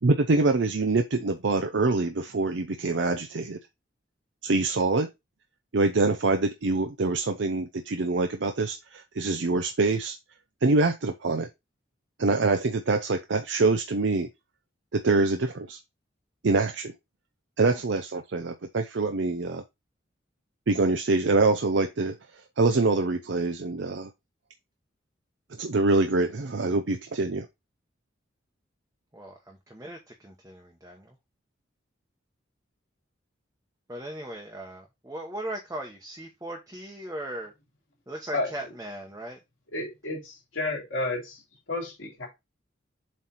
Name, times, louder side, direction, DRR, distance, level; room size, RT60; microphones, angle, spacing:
voice 1, 0.0-3.6 4.4-5.1 5.7-10.2 10.6-11.5 12.2-14.3 14.9-15.8 16.4-16.9 17.6-19.6 20.7-22.2 22.6-24.1 25.6-27.5, right 3 dB, 65° right, 0.6 m, -25 dB
voice 2, 29.1-31.1 33.9-37.5 38.1-39.4, right 1 dB, 15° right, 1.0 m, -38 dB
voice 3, 39.7-41.4 41.7-42.3, left 2 dB, 75° left, 3.4 m, -31 dB
7.5 x 3.3 x 4.2 m
head